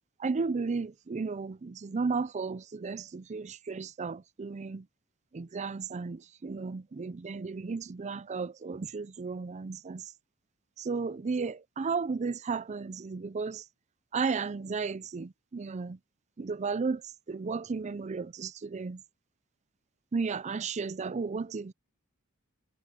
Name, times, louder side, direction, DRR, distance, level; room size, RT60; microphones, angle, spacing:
voice 1, 0.2-4.8 5.3-10.0 10.8-13.6 14.1-16.0 16.4-17.0 17.3-19.0 20.1-21.7, right 4 dB, 30° right, 0.4 m, -34 dB
head